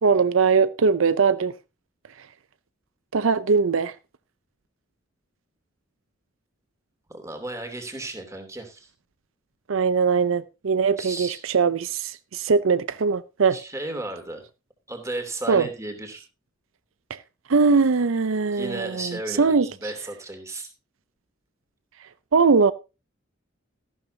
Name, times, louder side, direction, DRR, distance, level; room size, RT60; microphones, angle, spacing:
voice 1, 0.0-1.5 3.1-3.9 9.7-13.6 15.5-15.7 17.1-17.2 17.5-19.9 22.3-22.7, right 5 dB, 80° right, 0.6 m, -21 dB
voice 2, 7.1-8.9 11.0-11.4 13.5-14.4 14.9-16.2 18.5-19.5 19.8-20.7, right 2 dB, 15° right, 2.8 m, -34 dB
14.0 x 12.0 x 2.8 m
head